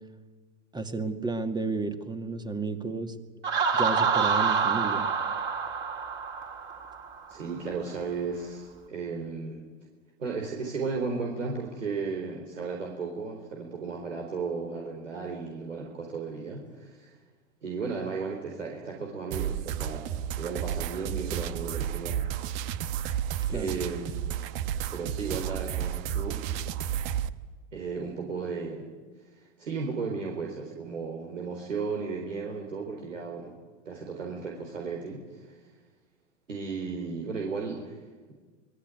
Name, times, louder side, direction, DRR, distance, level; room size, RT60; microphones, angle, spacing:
voice 1, 0.7-3.1 3.7-5.1 23.4-23.8, right 3 dB, 10° right, 7 dB, 2.1 m, -32 dB
Laughter, 3.4-7.1, right 6 dB, 30° right, 3.9 m, -27 dB
voice 2, 7.3-9.6 10.2-17.1 17.6-22.2 23.5-24.4 24.9-26.5 27.7-28.8 29.4-33.5 33.9-35.5 36.5-38.4, right 4 dB, 85° right, 0 dB, 4.1 m, -35 dB
sound 1, 19.3-27.3, right 10 dB, 50° right, 1.3 m, -32 dB
25.0 x 19.5 x 9.5 m, 1.4 s
hypercardioid pair, 100°, 37 cm